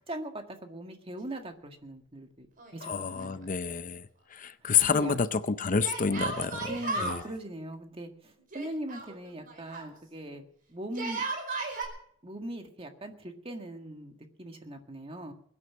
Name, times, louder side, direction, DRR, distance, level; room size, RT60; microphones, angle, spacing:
voice 1, 0.1-2.5 2.7-3.4 4.6-5.2 6.7-10.4 10.7-11.2 12.2-15.3, right 1 dB, 30° right, 5 dB, 1.9 m, -40 dB
Yell, 2.6-3.4 3.7-3.8 5.8-7.2 8.5-9.9 10.9-11.9, right 3 dB, 45° right, 4.7 m, -35 dB
voice 2, 2.9-4.0 4.4-6.7 7.1-7.2, left 6 dB, 40° left, 13 dB, 0.6 m, -28 dB
21.5 x 9.7 x 6.3 m, 0.65 s
head